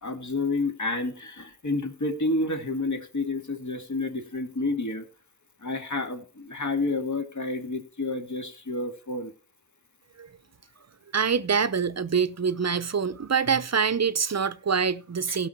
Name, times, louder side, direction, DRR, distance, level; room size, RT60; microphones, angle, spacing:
voice 1, 0.0-5.1 5.6-9.3 15.3-15.4, left 2 dB, 50° left, 2.3 m, -30 dB
voice 2, 11.1-15.5, right 6 dB, 45° right, 0.8 m, -25 dB
16.5 x 6.3 x 4.5 m
wide cardioid pair, 80°, 37 cm